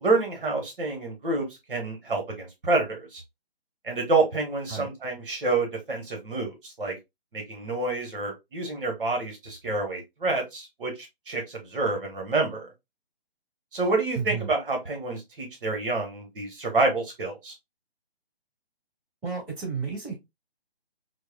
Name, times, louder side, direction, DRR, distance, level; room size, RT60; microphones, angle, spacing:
voice 1, 0.0-3.2 3.8-7.0 7.3-12.7 13.7-17.5, right 3 dB, 55° right, 1.4 m, -28 dB
voice 2, 14.1-14.5 19.2-20.1, right 6 dB, 15° right, 2.3 m, -32 dB
4.4 x 2.2 x 2.3 m
figure-of-eight pair, 145°, 31 cm